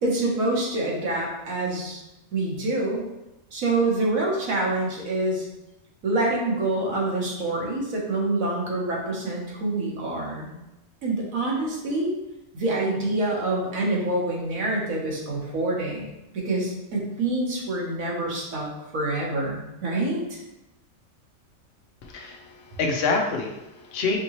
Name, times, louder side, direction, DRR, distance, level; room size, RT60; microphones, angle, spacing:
voice 1, 0.0-2.0 2.3-3.0 3.5-5.5 6.0-10.5 11.0-12.1 12.5-18.7 18.9-20.4, right 2 dB, 80° right, -2 dB, 1.5 m, -26 dB
voice 2, 22.0-24.2, left 3 dB, 55° left, 1 dB, 0.8 m, -27 dB
5.1 x 2.8 x 3.0 m, 0.96 s
omnidirectional pair, 1.4 m